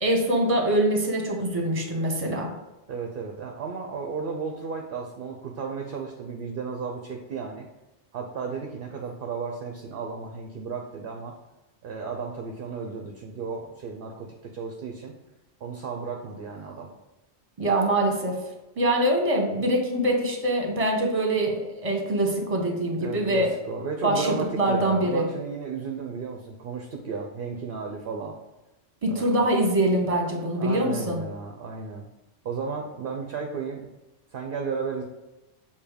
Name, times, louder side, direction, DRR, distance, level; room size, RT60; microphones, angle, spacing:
voice 1, 0.0-2.5 17.6-18.4 18.8-23.5 24.0-25.3 29.0-31.2, right 1 dB, 30° right, 1 dB, 1.2 m, -24 dB
voice 2, 2.9-7.7 8.1-11.3 11.8-15.1 15.6-16.9 23.0-28.4 29.1-29.3 30.6-32.1 32.4-33.8 34.3-35.0, right 5 dB, 60° right, 2 dB, 0.8 m, -34 dB
6.9 x 2.8 x 5.0 m, 1.0 s
omnidirectional pair, 1.1 m